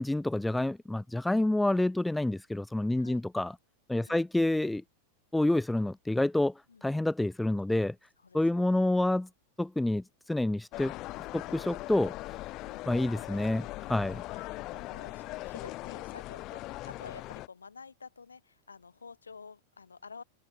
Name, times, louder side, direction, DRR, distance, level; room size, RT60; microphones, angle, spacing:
voice 1, 0.0-3.5 3.9-4.8 5.3-6.5 6.8-7.9 8.3-9.3 9.6-10.9 11.3-12.1 12.9-14.2, left 1 dB, 5° left, 0.5 m, -28 dB
voice 2, 8.2-9.1 14.0-20.2, left 5 dB, 75° left, 7.5 m, -50 dB
sound 1, 10.7-17.5, left 18 dB, 40° left, 1.3 m, -40 dB
open air
figure-of-eight pair, 90°, 0 cm